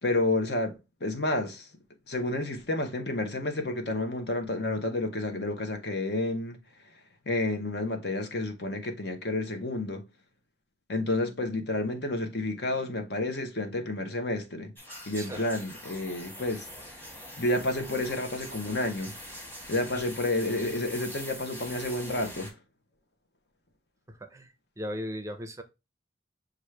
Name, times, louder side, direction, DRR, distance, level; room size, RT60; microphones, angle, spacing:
voice 1, 0.0-0.7 1.0-1.7 2.1-6.6 7.3-10.1 10.9-14.7 15.1-16.7 17.4-19.1 19.7-22.5, left 2 dB, 65° left, 0.9 m, -30 dB
sound 1, 14.8-22.5, equal, 10° left, 1.3 m, -43 dB
voice 2, 24.1-25.6, equal, 15° right, 0.5 m, -38 dB
6.0 x 2.5 x 3.1 m
head